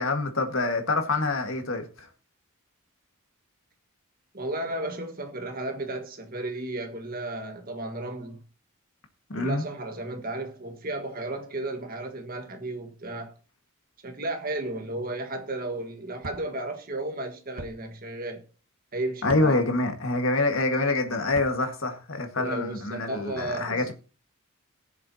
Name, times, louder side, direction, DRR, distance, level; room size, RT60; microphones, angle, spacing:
voice 1, 0.0-2.1 9.3-9.6 19.2-23.9, left 2 dB, 65° left, 1.8 m, -26 dB
voice 2, 4.3-8.4 9.3-13.3 14.0-18.4 18.9-19.5 22.3-23.9, right 2 dB, 40° right, 1.6 m, -34 dB
sound 1, 16.2-16.4 17.6-17.7 19.2-19.5 21.2-21.6, right 1 dB, 70° right, 1.4 m, -40 dB
19.5 x 7.2 x 2.9 m
head